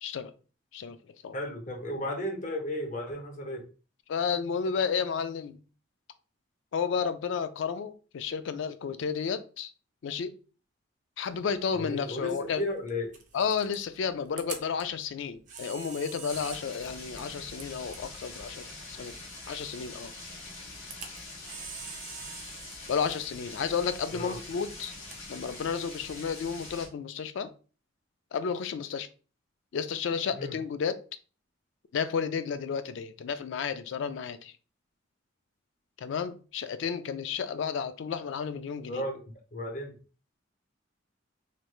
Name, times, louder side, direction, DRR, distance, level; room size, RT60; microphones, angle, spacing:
voice 1, 0.0-0.3 0.7-1.0 1.2-1.3 4.1-5.6 6.7-9.7 10.0-10.3 11.2-12.6 13.3-19.1 19.5-20.1 22.9-24.9 25.3-27.5 28.3-29.1 29.7-31.0 31.9-34.5 36.0-39.0, left 6 dB, 70° left, 12 dB, 0.3 m, -32 dB
voice 2, 1.3-3.6 11.7-13.1 24.1-24.4 30.4-30.5 38.9-39.2 39.5-39.9, left 1 dB, 40° left, 3 dB, 0.7 m, -34 dB
Camera, 11.3-26.8, right 5 dB, 40° right, 0.5 m, -48 dB
sound 1, 16.3-26.9, left 2 dB, 90° left, 1.2 m, -44 dB
3.2 x 3.0 x 2.3 m, 0.36 s
head